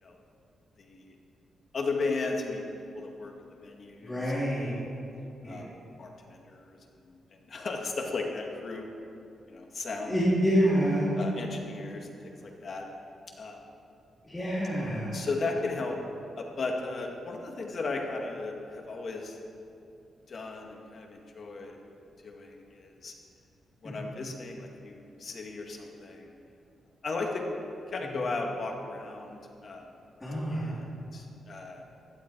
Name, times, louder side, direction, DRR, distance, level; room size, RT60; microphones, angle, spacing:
voice 1, 0.8-1.2 1.7-2.6 2.9-4.9 5.4-5.7 6.0-6.8 7.0-8.9 9.5-10.2 11.1-12.9 13.4-13.6 15.1-16.0 16.4-19.4 20.3-21.8 22.2-23.1 23.8-26.3 27.0-27.4 27.9-29.9 30.5-31.8, left 3 dB, 50° left, 1 dB, 2.0 m, -36 dB
voice 2, 4.0-4.7 5.4-5.6 10.1-11.1 14.3-15.1 23.8-23.9 30.2-30.7, equal, 15° left, -9 dB, 3.4 m, -27 dB
17.0 x 12.0 x 4.7 m, 2.6 s
cardioid pair, 125°, 0 cm